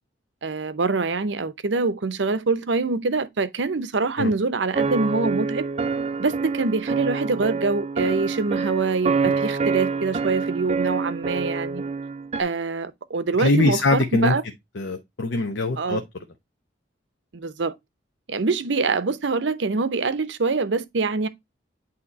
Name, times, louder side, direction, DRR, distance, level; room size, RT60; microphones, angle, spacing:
voice 1, 0.4-5.6 6.2-11.8 12.4-14.4 15.8-16.0 17.3-17.8 18.3-21.3, right 4 dB, 75° right, 0.7 m, -25 dB
sound 1, 4.7-12.4, right 4 dB, 35° right, 0.4 m, -26 dB
voice 2, 13.4-14.4 14.8-16.0, left 3 dB, 75° left, 0.8 m, -22 dB
8.6 x 2.9 x 4.0 m
head